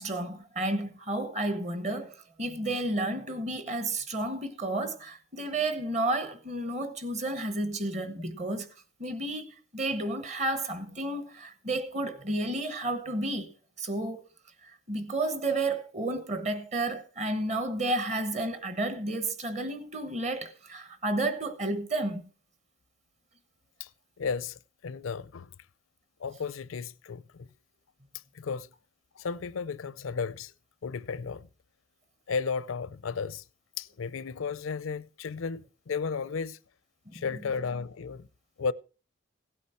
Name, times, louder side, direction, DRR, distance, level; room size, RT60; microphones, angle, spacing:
voice 1, 0.0-8.7 9.0-13.5 13.8-14.2 14.6-22.3 37.1-37.2, right 2 dB, 35° right, 1.1 m, -31 dB
voice 2, 24.2-25.5 26.2-27.5 28.3-28.7 29.2-30.5 30.8-31.5 32.3-33.4 33.8-36.6 37.1-38.3 38.6-38.7, left 5 dB, 80° left, 0.5 m, -34 dB
16.5 x 8.5 x 4.4 m
head